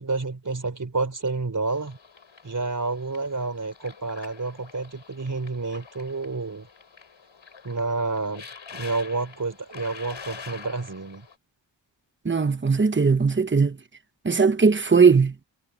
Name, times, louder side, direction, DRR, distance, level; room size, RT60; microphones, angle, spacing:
voice 1, 0.0-2.0 2.4-6.7 7.6-8.5 8.7-11.3, right 3 dB, 40° right, 4.5 m, -29 dB
sound 1, 1.7-11.3, left 6 dB, 75° left, 6.0 m, -46 dB
voice 2, 12.2-13.8 14.2-15.3, right 5 dB, 25° right, 1.1 m, -19 dB
wide cardioid pair, 85°, 46 cm